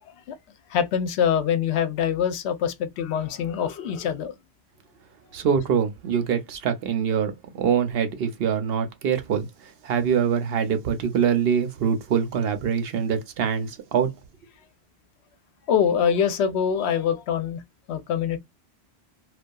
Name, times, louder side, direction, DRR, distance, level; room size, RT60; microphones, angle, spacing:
voice 1, 0.7-4.3 15.7-17.6 17.9-18.4, left 8 dB, 80° left, 0.8 m, -24 dB
voice 2, 5.3-7.3 7.6-14.1, right 7 dB, 70° right, 0.8 m, -24 dB
2.6 x 2.3 x 2.2 m
omnidirectional pair, 1.1 m